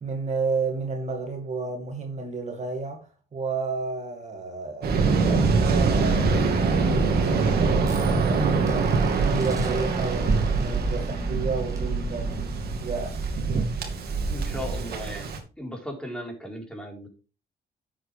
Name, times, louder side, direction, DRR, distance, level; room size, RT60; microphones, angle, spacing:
voice 1, 0.0-8.9 9.2-12.4 12.8-13.2, right 4 dB, 45° right, 2.2 m, -31 dB
Waves surf, 4.8-15.4, right 4 dB, 65° right, 2.4 m, -24 dB
sound 1, 5.4-13.9, right 1 dB, 20° right, 2.9 m, -35 dB
voice 2, 14.3-15.3 15.6-17.1, equal, 5° left, 4.5 m, -36 dB
9.9 x 7.9 x 3.5 m
cardioid pair, 75°, 17 cm